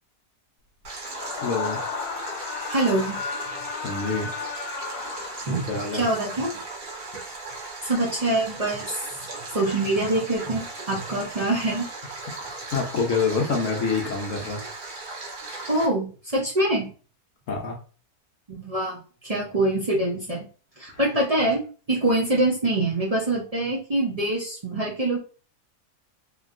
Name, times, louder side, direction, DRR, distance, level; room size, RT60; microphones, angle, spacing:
Stream, 0.8-15.9, right 3 dB, 75° right, 1.6 m, -37 dB
Screaming, 1.0-5.9, left 5 dB, 90° left, 1.2 m, -34 dB
voice 1, 1.4-1.8 3.8-4.3 5.7-6.1 12.4-14.6 17.5-17.8, left 4 dB, 65° left, 1 dB, 1.0 m, -26 dB
voice 2, 2.7-3.2 5.5-6.6 7.8-9.2 9.5-12.2 15.7-16.9 18.5-20.4 20.8-25.2, right 2 dB, 45° right, -5 dB, 0.5 m, -25 dB
2.9 x 2.6 x 2.5 m, 0.38 s
omnidirectional pair, 1.6 m